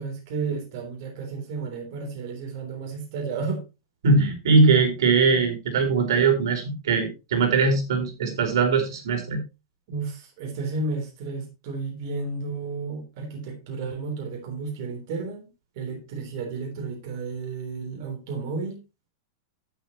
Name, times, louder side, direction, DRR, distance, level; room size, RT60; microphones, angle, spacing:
voice 1, 0.0-3.6 9.9-15.5 15.8-18.8, right 4 dB, 45° right, 3.4 m, -32 dB
voice 2, 4.0-9.4, right 4 dB, 80° right, 4.2 m, -21 dB
12.0 x 9.2 x 3.0 m
supercardioid pair, 170°, 2 cm